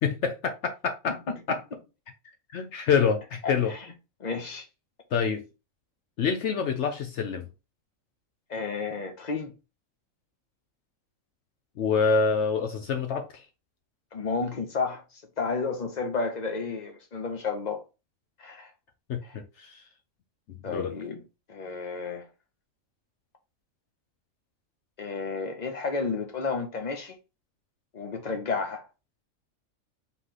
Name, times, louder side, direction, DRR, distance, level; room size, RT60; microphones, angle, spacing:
voice 1, 0.0-1.2 1.5-1.6 2.5-3.7 5.1-5.4 6.2-7.4 11.8-13.4 19.1-19.8 20.7-20.9, left 6 dB, 65° left, 0.9 m, -26 dB
voice 2, 1.1-1.6 3.4-3.9 4.2-4.7 8.5-9.5 14.1-17.8 18.4-18.7 19.2-19.4 20.6-21.2 21.5-22.3 25.0-27.2 27.9-28.9, left 4 dB, 35° left, 0.8 m, -32 dB
3.9 x 3.2 x 3.8 m
omnidirectional pair, 1.4 m